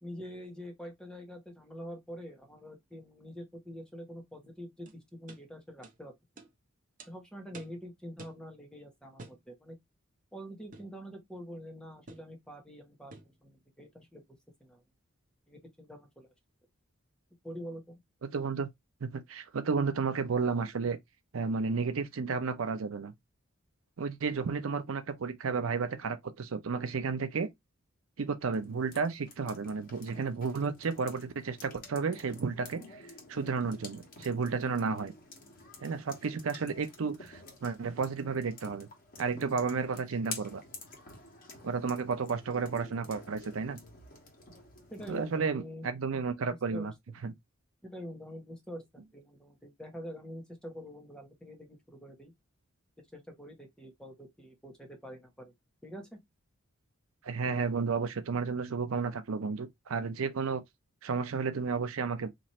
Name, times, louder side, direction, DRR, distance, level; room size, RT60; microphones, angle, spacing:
voice 1, 0.0-6.1 7.1-9.8 10.3-14.2 14.6-14.8 15.5-16.3 17.4-18.0 44.9-45.9 46.7-46.9 47.8-52.3 53.1-55.5 55.8-56.2, equal, 5° left, 1.1 m, -45 dB
sound 1, 4.9-5.0 5.3-5.4 5.8-6.0 6.4-6.5 7.0-7.1 7.5-7.8 8.2-8.4 9.2-9.4 10.7-11.0 12.1-12.3 13.1-13.4, right 2 dB, 40° right, 0.8 m, -49 dB
voice 2, 18.2-18.7 19.0-21.0 21.3-23.1 24.0-27.5 28.2-35.1 35.8-38.9 39.2-40.6 41.6-43.8 45.1-46.9 47.2-47.3 57.2-60.6 61.0-62.3, right 5 dB, 70° right, 0.5 m, -32 dB
sound 2, 28.5-45.4, left 3 dB, 45° left, 1.3 m, -50 dB
3.0 x 2.6 x 4.1 m
head